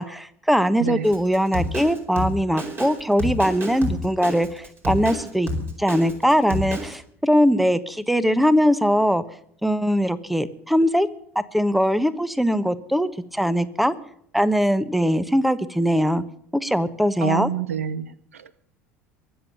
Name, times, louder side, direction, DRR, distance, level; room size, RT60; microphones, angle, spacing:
voice 1, 0.0-5.5 5.8-9.2 9.6-11.1 11.3-13.9 14.3-16.2 16.5-17.5, equal, ahead, 16 dB, 1.1 m, -21 dB
Drum kit, 1.0-7.0, equal, 30° right, 4.7 m, -29 dB
voice 2, 17.2-18.7, right 8 dB, 80° right, 20 dB, 0.7 m, -28 dB
23.0 x 7.8 x 6.7 m, 0.67 s
figure-of-eight pair, 70°, 7 cm